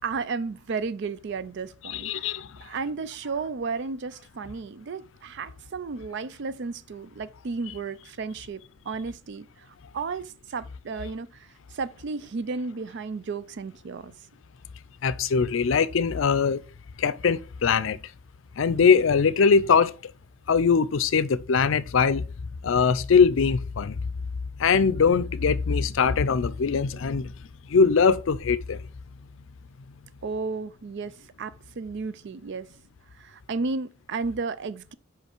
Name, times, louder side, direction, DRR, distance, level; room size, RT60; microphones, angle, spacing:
voice 1, 0.0-8.6 8.9-9.5 9.9-14.1 30.2-32.7 33.2-34.9, right 4 dB, 55° right, 0.4 m, -33 dB
voice 2, 1.8-2.5 15.0-16.6 17.0-18.0 18.6-19.9 20.5-22.3 22.6-24.0 24.6-27.3 27.7-28.8, left 5 dB, 65° left, 0.5 m, -21 dB
5.6 x 5.0 x 4.4 m
head